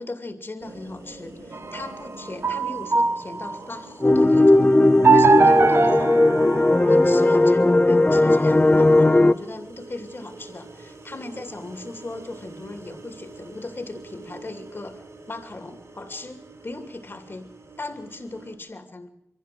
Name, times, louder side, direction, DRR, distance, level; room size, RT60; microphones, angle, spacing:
voice 1, 0.0-4.7 5.1-6.1 6.8-17.5 17.8-19.1, left 2 dB, 50° left, 7 dB, 2.7 m, -37 dB
sound 1, 0.6-18.6, right 2 dB, 75° right, 4.5 m, -45 dB
sound 2, 1.5-3.8 5.0-7.3, right 4 dB, 55° right, 0.9 m, -21 dB
sound 3, 4.0-9.3, left 2 dB, 25° left, 0.9 m, -17 dB
23.5 x 15.0 x 7.7 m, 0.80 s
wide cardioid pair, 65°, 5 cm